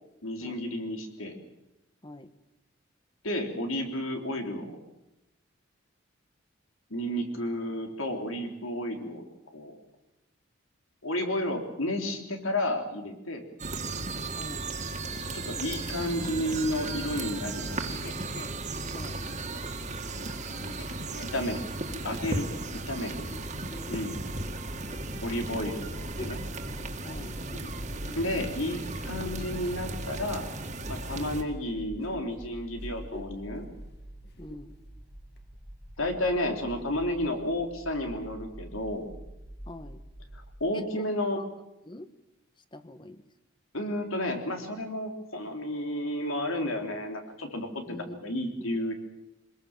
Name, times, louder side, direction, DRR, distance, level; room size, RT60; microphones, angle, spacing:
voice 1, 0.2-1.3 3.2-4.8 6.9-9.3 9.5-9.7 11.0-13.4 15.3-18.0 21.3-21.6 22.0-22.5 22.9-23.2 23.9-24.2 25.2-26.4 28.2-30.4 30.9-33.7 36.0-39.1 40.6-41.4 43.7-48.9, left 1 dB, 85° left, 4 dB, 3.5 m, -32 dB
sound 1, 13.6-31.4, right 2 dB, 35° right, 2.1 m, -36 dB
voice 2, 14.3-14.7 18.9-19.2 23.1-24.0 27.0-27.4 34.4-34.7 39.7-40.0 40.7-41.1 41.3-41.5 41.8-42.1 42.7-43.2 47.9-48.8, left 1 dB, 25° left, 11 dB, 1.2 m, -45 dB
Chuckle chortle, 16.7-22.3 22.9-23.0 25.6-29.6 30.2-31.7 32.0-32.3 32.7-33.4 33.7-33.8 34.2-34.7 35.4-35.5, left 2 dB, 50° left, 2.0 m, -48 dB
sound 2, 21.8-40.6, equal, 5° right, 1.7 m, -45 dB
23.5 x 21.0 x 7.3 m, 0.91 s
head